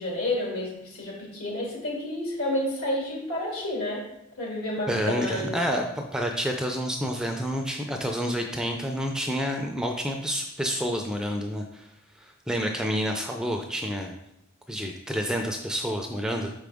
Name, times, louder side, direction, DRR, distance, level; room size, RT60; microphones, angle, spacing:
voice 1, 0.0-4.0 4.4-5.5, left 1 dB, 75° left, -3 dB, 2.6 m, -30 dB
voice 2, 4.9-11.9 12.2-14.1 14.7-16.5, equal, 5° right, 3 dB, 0.4 m, -29 dB
6.3 x 5.0 x 3.5 m, 0.83 s
head